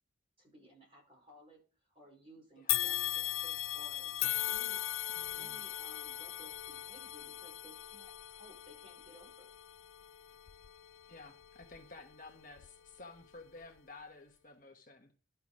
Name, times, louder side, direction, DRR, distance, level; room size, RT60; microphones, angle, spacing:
voice 1, 0.4-4.8 5.3-9.5, equal, 25° right, -2 dB, 5.2 m, -59 dB
sound 1, 2.7-12.0 12.5-12.7 13.6-13.7, left 14 dB, 85° left, 0.4 m, -38 dB
voice 2, 5.2-5.6 11.1-15.1, left 3 dB, 40° left, 3 dB, 1.2 m, -53 dB
11.5 x 5.9 x 4.9 m, 0.37 s
head